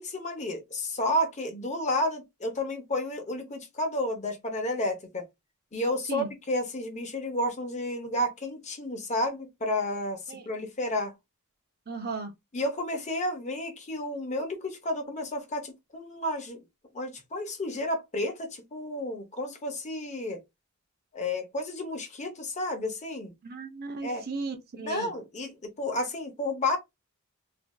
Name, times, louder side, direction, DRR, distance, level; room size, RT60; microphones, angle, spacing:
voice 1, 0.0-5.2 5.7-11.1 12.5-16.6 16.9-20.4 21.1-23.3 24.0-24.2 24.8-26.8, left 1 dB, 35° left, 0.8 m, -31 dB
voice 2, 11.9-12.3 23.4-25.1, right 4 dB, 45° right, 0.7 m, -36 dB
3.2 x 2.6 x 2.3 m
head